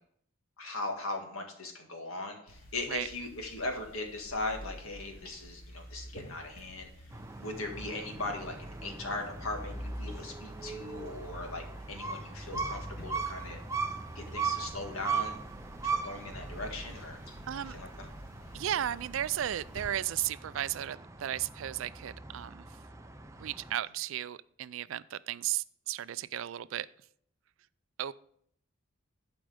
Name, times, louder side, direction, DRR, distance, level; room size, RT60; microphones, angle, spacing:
voice 1, 0.6-6.9 7.4-8.6 8.8-13.6 14.2-15.4 15.8-17.2 17.6-18.1, left 2 dB, 80° left, 3 dB, 1.8 m, -39 dB
sound 1, 2.5-19.8, equal, 45° left, 2.5 m, -48 dB
sound 2, 7.1-23.7, right 5 dB, 15° right, 0.5 m, -40 dB
voice 2, 17.5-17.8 18.5-22.7 23.4-26.9 28.0-28.1, right 11 dB, 65° right, 18 dB, 0.3 m, -34 dB
11.5 x 5.1 x 4.9 m, 0.66 s
head